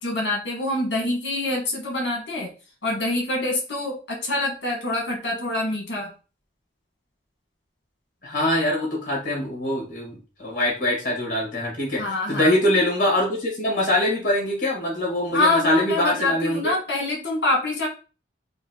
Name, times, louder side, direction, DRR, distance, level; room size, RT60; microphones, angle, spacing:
voice 1, 0.0-2.5 2.8-6.1 12.0-12.5 15.3-17.9, left 2 dB, 65° left, 0 dB, 1.4 m, -25 dB
voice 2, 8.2-12.0 12.3-16.7, left 1 dB, 45° left, -3 dB, 1.8 m, -23 dB
4.3 x 2.3 x 2.9 m, 0.36 s
head